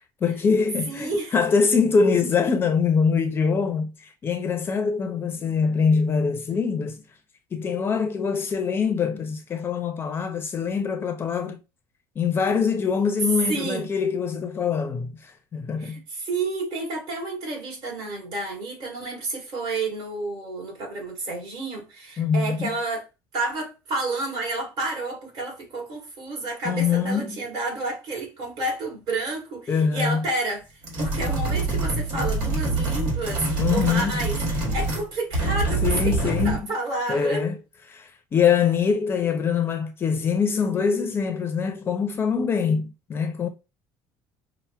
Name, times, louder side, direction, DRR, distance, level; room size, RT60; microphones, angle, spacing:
voice 1, 0.0-7.0 7.5-11.6 12.2-16.0 22.2-22.7 26.6-27.4 29.7-30.2 33.6-34.2 35.8-36.7 37.1-37.6 37.9-43.5, left 6 dB, 25° left, 0.4 m, -24 dB
voice 2, 0.9-1.3 13.5-13.9 15.8-23.0 23.3-30.7 31.0-37.4, right 2 dB, 55° right, 1.8 m, -30 dB
sound 1, 30.8-35.1 35.3-36.6, right 2 dB, 75° right, 1.6 m, -25 dB
5.4 x 2.0 x 2.3 m
cardioid pair, 150°, 9 cm